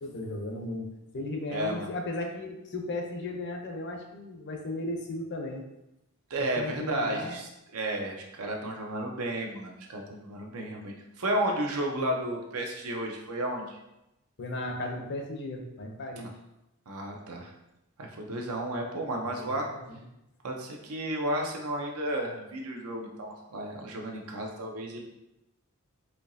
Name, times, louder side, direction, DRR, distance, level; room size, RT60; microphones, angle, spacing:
voice 1, 0.0-5.6 6.4-7.4 14.4-16.3 19.4-20.0, left 2 dB, 55° left, 3 dB, 0.6 m, -36 dB
voice 2, 1.5-1.9 6.3-13.8 16.2-16.3 16.9-17.5 18.0-19.7 20.4-25.0, right 1 dB, 75° right, 1 dB, 0.7 m, -33 dB
4.4 x 2.8 x 2.6 m, 0.90 s
head